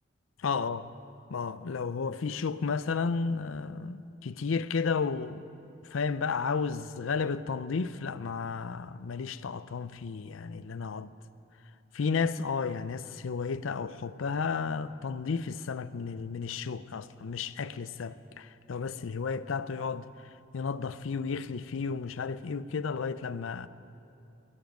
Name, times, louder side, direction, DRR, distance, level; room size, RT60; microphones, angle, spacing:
voice 1, 0.4-0.9 1.3-5.4 5.9-11.1 11.9-20.1 20.5-23.7, left 5 dB, 75° left, 0.5 m, -32 dB
21.0 x 7.3 x 9.2 m
head